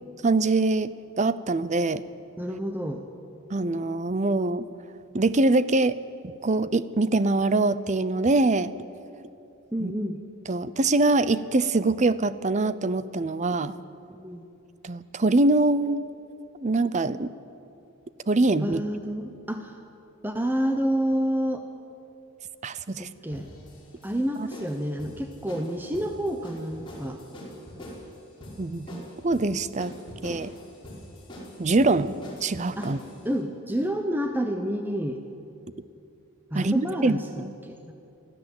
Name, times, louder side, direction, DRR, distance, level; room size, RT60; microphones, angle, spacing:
voice 1, 0.2-2.0 3.5-4.7 5.1-6.0 6.4-8.7 9.8-9.9 10.5-13.7 14.8-16.1 16.6-17.3 18.3-18.8 22.6-23.1 24.4-24.5 28.6-29.9 30.2-30.5 31.6-32.2 32.4-33.0 36.5-37.5, right 2 dB, 35° right, 15 dB, 0.6 m, -24 dB
voice 2, 2.4-3.0 9.7-10.2 14.1-14.5 18.6-19.7 20.2-21.6 22.9-23.5 24.0-27.2 32.8-32.9 33.2-35.2 36.5-37.9, equal, 10° right, 5 dB, 0.9 m, -29 dB
sound 1, 23.3-33.2, left 1 dB, 25° left, 5.0 m, -43 dB
24.0 x 15.0 x 8.0 m, 2.8 s
head